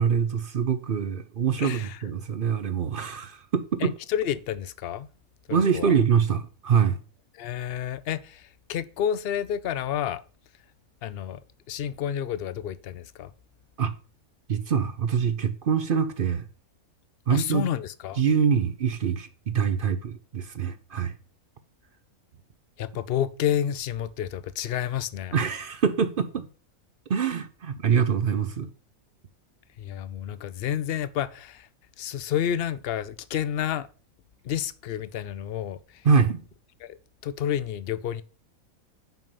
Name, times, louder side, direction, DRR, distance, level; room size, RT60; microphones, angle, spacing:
voice 1, 0.0-3.9 5.5-7.0 13.8-13.9 14.5-16.5 17.3-17.7 18.2-21.1 25.3-26.5 27.1-28.7 36.0-36.4, right 7 dB, 50° right, 0.7 m, -24 dB
voice 2, 1.6-2.0 3.8-5.1 5.5-5.9 7.4-10.2 11.0-11.4 11.7-13.3 17.3-18.2 22.8-25.3 29.8-31.7 32.0-33.9 34.4-36.0 36.8-37.0 37.2-38.2, left 10 dB, 65° left, 0.6 m, -30 dB
5.9 x 5.4 x 6.9 m
omnidirectional pair, 1.5 m